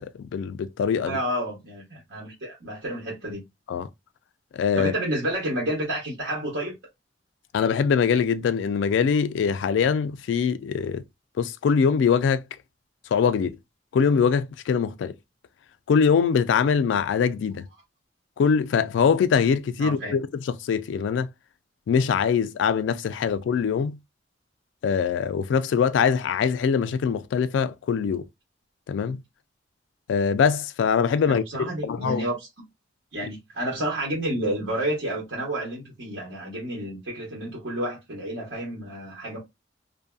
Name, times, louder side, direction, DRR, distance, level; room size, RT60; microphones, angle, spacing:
voice 1, 0.0-1.2 3.7-3.9 4.5-4.9 7.5-11.0 11.4-12.4 13.1-13.6 13.9-15.1 15.9-17.7 18.4-20.3 20.6-21.3 21.9-24.0 24.8-28.3 28.9-29.2 30.1-32.2, left 6 dB, 80° left, 0.3 m, -23 dB
voice 2, 1.0-3.4 4.7-6.7 19.8-20.2 31.2-32.5 33.1-39.4, right 1 dB, 85° right, 1.1 m, -30 dB
2.7 x 2.6 x 2.2 m
head